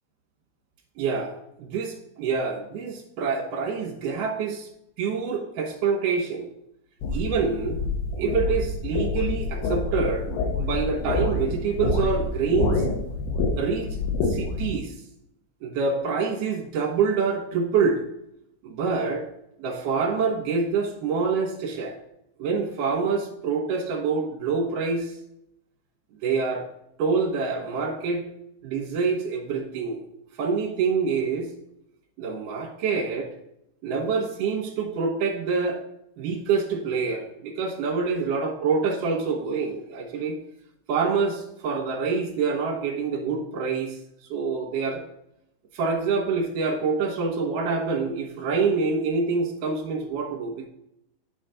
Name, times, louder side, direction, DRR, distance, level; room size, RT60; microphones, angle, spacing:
voice 1, 1.0-4.7 5.0-6.5 7.1-7.8 8.2-10.3 10.6-12.8 13.6-14.0 14.2-14.9 15.6-18.0 18.6-19.3 19.6-22.0 22.4-25.1 26.2-26.7 27.0-28.2 28.6-30.1 30.4-31.5 32.2-33.3 33.8-35.8 36.2-40.4 40.9-44.0 44.3-45.0 45.7-50.7, right 5 dB, 65° right, 1 dB, 2.6 m, -26 dB
sound 1, 7.0-14.7, left 3 dB, 85° left, 3.1 m, -27 dB
8.9 x 4.1 x 5.1 m, 0.80 s
omnidirectional pair, 4.4 m